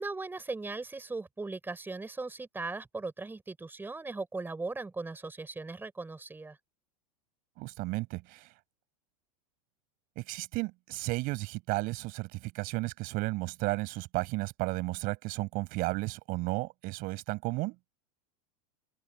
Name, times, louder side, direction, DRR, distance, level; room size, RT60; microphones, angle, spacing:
voice 1, 0.0-6.6, right 3 dB, 10° right, 5.3 m, -38 dB
voice 2, 7.6-8.5 10.2-17.8, right 23 dB, 50° right, 7.5 m, -33 dB
open air
hypercardioid pair, 100°, 19 cm